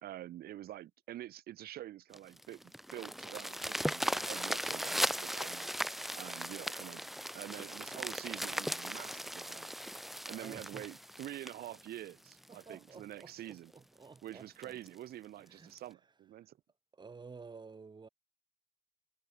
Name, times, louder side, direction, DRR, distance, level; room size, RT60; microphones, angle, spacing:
voice 1, 0.0-5.7 6.2-7.0 7.3-9.7 10.3-13.7 14.2-16.6, right 13 dB, 65° right, 2.2 m, -47 dB
sound 1, 2.1-12.6 13.2-13.3 13.7-13.8 14.2-14.3 14.6-14.9 15.8-15.9, equal, ahead, 2.0 m, -38 dB
voice 2, 10.3-10.9 12.5-14.8 15.5-15.7 16.9-18.1, right 4 dB, 25° right, 3.9 m, -52 dB
cardioid pair, 110°, 17 cm